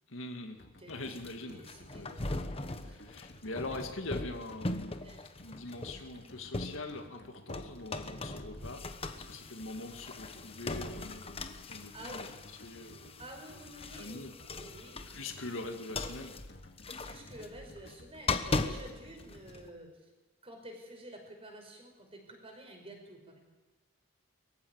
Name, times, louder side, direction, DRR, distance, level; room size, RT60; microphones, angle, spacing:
voice 1, 0.1-1.6 1.9-5.0 5.4-8.9 9.2-12.3 12.6-13.1 14.0-14.3 15.1-16.4, left 2 dB, 70° left, 4 dB, 2.1 m, -43 dB
sound 1, 0.6-19.8, left 1 dB, 55° left, 2.4 m, -56 dB
voice 2, 0.8-2.5 2.8-3.0 5.0-5.3 11.9-12.3 13.2-14.2 14.4-15.3 17.0-20.1 20.4-23.4, right 1 dB, 30° right, 3 dB, 5.5 m, -50 dB
sound 2, 1.0-7.2 7.5-19.7, left 2 dB, 30° left, 1.2 m, -39 dB
23.5 x 15.0 x 9.6 m, 1.2 s
head